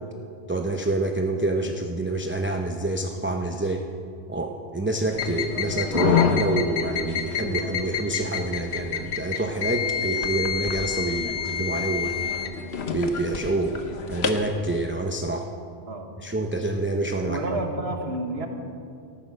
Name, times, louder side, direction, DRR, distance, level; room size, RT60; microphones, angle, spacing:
voice 1, 0.5-3.8 4.3-12.3 12.9-13.7 14.1-15.5 16.2-17.4, right 2 dB, 15° right, 3 dB, 0.6 m, -27 dB
sound 1, 5.1-14.5, left 7 dB, 85° left, 1.2 m, -28 dB
voice 2, 17.2-18.5, right 2 dB, 80° right, 4 dB, 1.6 m, -30 dB
14.0 x 13.0 x 6.3 m, 2.5 s
omnidirectional pair, 1.0 m